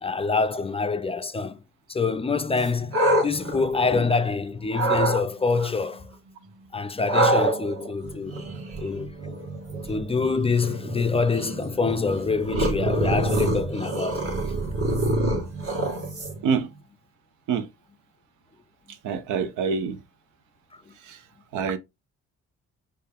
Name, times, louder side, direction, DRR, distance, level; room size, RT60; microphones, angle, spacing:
voice 1, 0.0-1.6 1.9-3.0 3.2-6.1 6.7-8.4 8.8-9.1 9.9-14.3, left 4 dB, 20° left, 0.4 m, -25 dB
sound 1, 2.6-4.3 4.7-5.2 7.1-16.6, right 1 dB, 50° right, 1.7 m, -26 dB
voice 2, 19.0-20.0 21.1-21.2 21.5-21.8, right 6 dB, 85° right, 0.7 m, -25 dB
4.4 x 2.6 x 3.4 m
cardioid pair, 90°, 30 cm